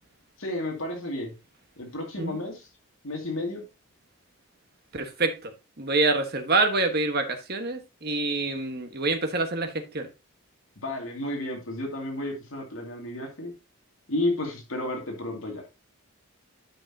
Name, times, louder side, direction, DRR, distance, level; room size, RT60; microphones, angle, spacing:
voice 1, 0.4-1.3 1.8-2.7 3.0-3.7 10.8-13.5 14.1-15.6, left 1 dB, 65° left, 2.4 m, -32 dB
voice 2, 4.9-5.5 5.8-10.1, right 3 dB, 45° right, 1.3 m, -26 dB
10.0 x 6.0 x 2.8 m
head